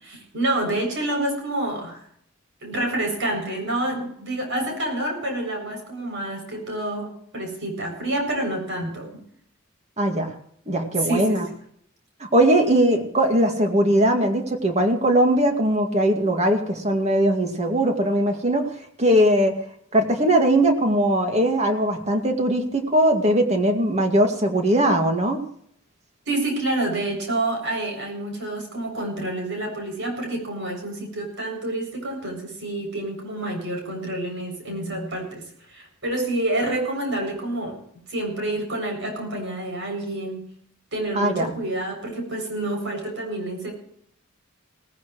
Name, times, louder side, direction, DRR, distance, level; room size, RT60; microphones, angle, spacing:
voice 1, 0.0-2.0 2.6-9.1 11.0-11.4 26.3-37.8 38.1-40.4 40.9-43.7, right 1 dB, 60° right, 2 dB, 7.5 m, -28 dB
voice 2, 10.0-10.3 10.7-11.5 12.2-18.7 19.0-19.6 19.9-25.4 41.2-41.5, right 1 dB, 30° right, 4 dB, 2.2 m, -20 dB
18.5 x 15.5 x 3.2 m, 0.67 s
head